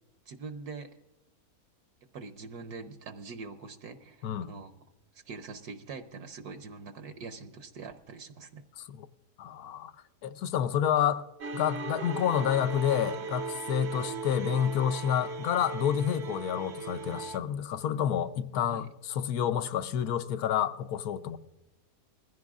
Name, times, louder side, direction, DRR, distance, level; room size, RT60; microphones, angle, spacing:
voice 1, 0.3-0.9 2.1-4.7 5.1-8.7 13.8-13.9 18.7-18.9, right 4 dB, 70° right, 1.3 m, -43 dB
voice 2, 9.4-9.9 10.2-11.2 11.5-21.4, left 9 dB, 70° left, 1.2 m, -29 dB
sound 1, 11.4-17.4, right 5 dB, 55° right, 0.8 m, -38 dB
21.0 x 15.5 x 2.4 m
omnidirectional pair, 1.7 m